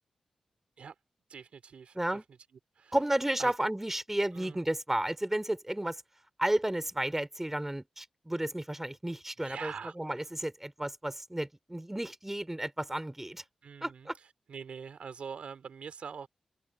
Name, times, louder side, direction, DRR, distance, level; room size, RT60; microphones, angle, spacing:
voice 1, 1.3-2.0 2.3-2.4 2.8-3.0 3.4-3.5 4.3-4.6 9.4-10.0 13.6-14.1 14.5-16.3, right 6 dB, 75° right, 3.5 m, -43 dB
voice 2, 2.9-6.0 6.4-13.4 13.8-14.1, right 1 dB, 15° right, 3.2 m, -32 dB
open air
supercardioid pair, 45°, 2 cm